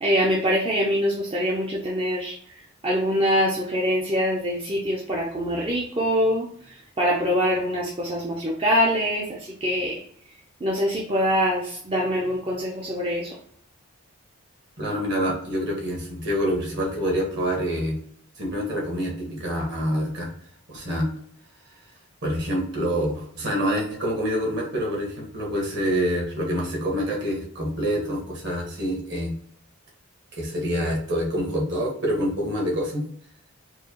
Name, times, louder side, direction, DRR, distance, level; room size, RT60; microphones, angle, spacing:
voice 1, 0.0-2.4 2.8-6.5 7.0-10.0 10.6-13.3, equal, 25° right, -4 dB, 0.6 m, -24 dB
voice 2, 14.8-18.0 18.4-20.3 20.7-21.1 22.2-29.3 30.3-33.0, equal, 50° right, -2 dB, 1.4 m, -26 dB
4.6 x 2.3 x 2.9 m, 0.62 s
head